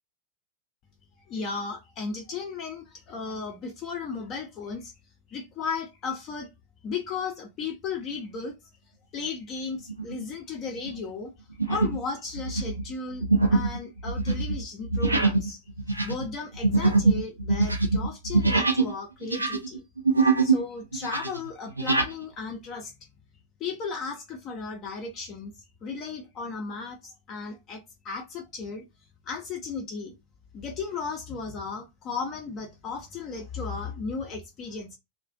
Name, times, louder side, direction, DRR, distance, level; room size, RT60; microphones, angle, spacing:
voice 1, 1.3-4.9 5.3-6.5 6.8-8.5 9.1-11.3 11.7-15.6 15.9-19.8 20.4-22.9 23.6-25.5 25.8-28.9 29.2-30.1 30.5-35.0, left 4 dB, 35° left, 0.4 m, -35 dB
sound 1, 9.9-10.2 10.8-11.0 11.6-12.1 12.3-18.9 19.2-20.6 20.9-22.1, right 3 dB, 85° right, 0.3 m, -24 dB
2.3 x 2.1 x 2.5 m
figure-of-eight pair, 90°, 0 cm